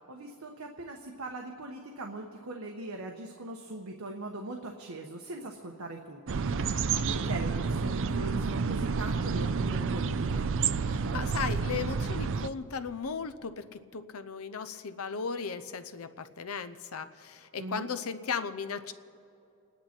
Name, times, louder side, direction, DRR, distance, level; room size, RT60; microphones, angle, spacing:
voice 1, 0.1-6.5 6.9-10.4 17.6-17.9, right 2 dB, 75° right, 2 dB, 1.1 m, -40 dB
sound 1, 6.3-12.5, right 5 dB, 60° right, 0.5 m, -30 dB
voice 2, 10.9-18.9, left 5 dB, 75° left, 12 dB, 0.7 m, -36 dB
29.0 x 10.0 x 4.4 m, 2.6 s
head